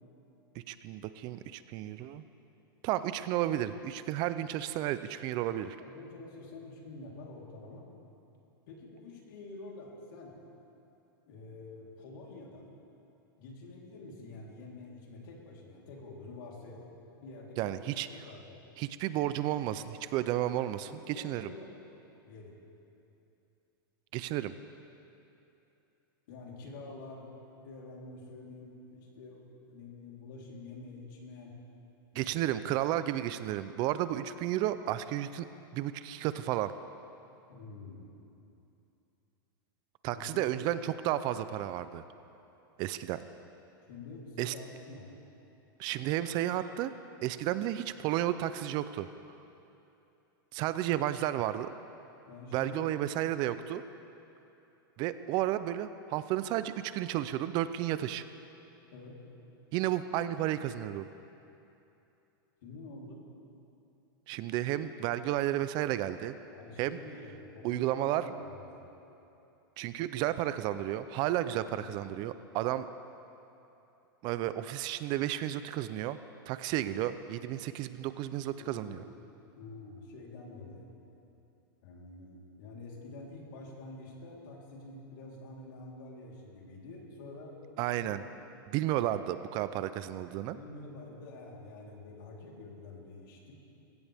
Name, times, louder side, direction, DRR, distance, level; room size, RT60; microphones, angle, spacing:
voice 1, 0.7-2.2 2.8-5.8 17.6-18.1 18.8-21.5 24.1-24.5 32.1-35.5 35.7-36.7 40.0-42.0 42.8-43.2 44.4-44.5 45.8-46.9 47.2-49.1 50.5-51.7 52.5-53.8 55.0-58.2 59.7-61.1 64.3-66.3 66.8-67.0 67.6-68.3 69.8-72.9 74.2-76.2 76.5-79.0 87.8-88.2 88.7-90.6, right 13 dB, 35° right, 13 dB, 0.5 m, -32 dB
voice 2, 5.8-7.9 8.7-10.4 11.3-12.7 13.4-16.9 17.2-18.6 20.8-21.7 22.2-22.6 26.3-27.3 27.6-29.4 29.7-31.5 32.2-32.5 37.5-38.1 40.1-40.5 43.9-45.1 52.3-52.9 58.9-59.2 62.6-63.2 66.5-68.8 71.6-71.9 78.6-79.0 79.6-80.9 81.8-87.6 88.0-88.2 90.5-93.5, left 2 dB, 65° left, -2 dB, 3.7 m, -47 dB
22.0 x 16.5 x 3.5 m, 2.8 s
supercardioid pair, 145°, 12 cm